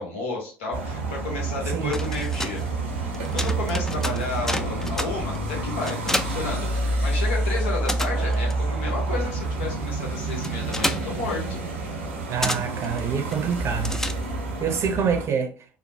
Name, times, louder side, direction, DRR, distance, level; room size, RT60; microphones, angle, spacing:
voice 1, 0.0-2.6 3.3-11.6, left 3 dB, 75° left, 1.0 m, -32 dB
sound 1, 0.7-15.3, right 2 dB, 90° right, 0.7 m, -28 dB
sound 2, 1.9-7.3 7.5-14.6, left 1 dB, 5° left, 0.3 m, -32 dB
voice 2, 12.3-14.0 14.6-15.5, right 7 dB, 45° right, 0.6 m, -26 dB
3.1 x 2.0 x 2.7 m
hypercardioid pair, 65°, 7 cm